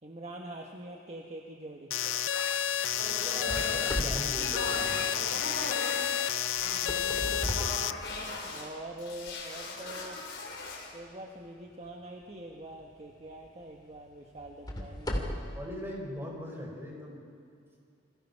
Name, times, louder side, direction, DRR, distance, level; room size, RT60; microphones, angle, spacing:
voice 1, 0.0-1.9 5.8-6.0 8.5-10.2 10.9-15.5, right 1 dB, 35° right, 0 dB, 1.5 m, -44 dB
sound 1, 1.9-7.9, left 11 dB, 85° left, 0.5 m, -31 dB
sound 2, 2.0-8.7 9.0-10.9, left 2 dB, 65° left, 4.2 m, -39 dB
voice 2, 3.0-5.0 15.5-17.2, equal, 10° right, -1 dB, 5.0 m, -40 dB
sound 3, 3.5-5.5 6.6-8.6 9.2-9.3 10.0-10.1 12.7-12.9 13.4-13.5 14.4-15.6, equal, 20° left, 2.6 m, -36 dB
28.0 x 22.5 x 5.6 m, 2.4 s
head